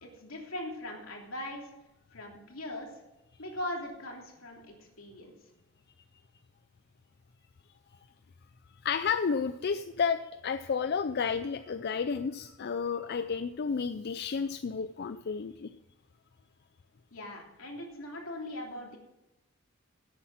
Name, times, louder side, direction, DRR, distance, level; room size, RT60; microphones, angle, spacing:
voice 1, 0.0-1.6 2.1-2.9 3.4-5.3 17.1-19.0, left 1 dB, 80° left, 0 dB, 2.9 m, -40 dB
voice 2, 8.8-15.7, left 6 dB, 50° left, 10 dB, 0.4 m, -31 dB
11.5 x 8.3 x 6.1 m, 0.99 s
head